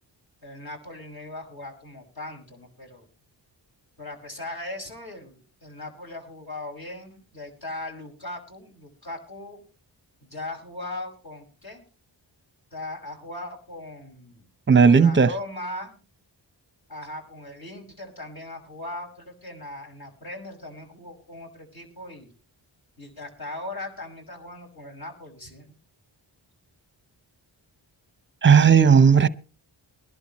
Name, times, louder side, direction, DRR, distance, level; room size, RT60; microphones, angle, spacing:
voice 1, 0.4-3.1 4.0-9.6 10.2-11.8 12.7-14.5 14.8-16.0 16.9-22.3 23.0-25.7, left 2 dB, 50° left, 6.0 m, -39 dB
voice 2, 14.7-15.3 28.4-29.3, right 6 dB, 25° right, 0.8 m, -14 dB
22.0 x 11.5 x 3.1 m
cardioid pair, 45°, 47 cm